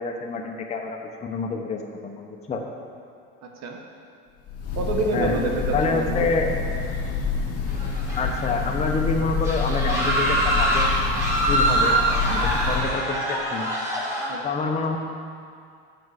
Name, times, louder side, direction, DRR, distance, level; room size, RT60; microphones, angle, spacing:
voice 1, 0.0-2.6 5.1-5.4 5.7-6.5 8.2-10.9 11.5-12.0 12.3-13.7 14.4-15.0, left 4 dB, 20° left, 1 dB, 0.7 m, -27 dB
voice 2, 3.4-3.8 4.7-6.3 14.3-14.5, right 3 dB, 60° right, 2 dB, 1.0 m, -27 dB
Breathing / Bird, 4.5-13.0, left 5 dB, 50° left, 1.1 m, -27 dB
sound 1, 7.7-8.5 8.9-9.0 9.4-14.3, right 1 dB, 10° right, 1.7 m, -24 dB
7.8 x 4.6 x 6.4 m, 2.3 s
cardioid pair, 130°, 31 cm